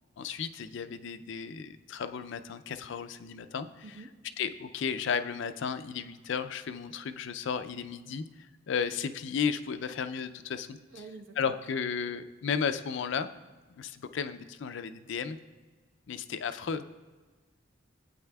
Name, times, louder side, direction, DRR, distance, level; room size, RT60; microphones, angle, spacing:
voice 1, 0.2-4.0 4.4-8.2 8.7-10.8 11.4-13.3 13.8-15.4 16.1-16.9, left 6 dB, 65° left, 11 dB, 0.4 m, -34 dB
voice 2, 3.8-4.1 10.8-11.5, right 3 dB, 75° right, 3 dB, 1.0 m, -47 dB
14.0 x 8.7 x 2.3 m, 1.3 s
head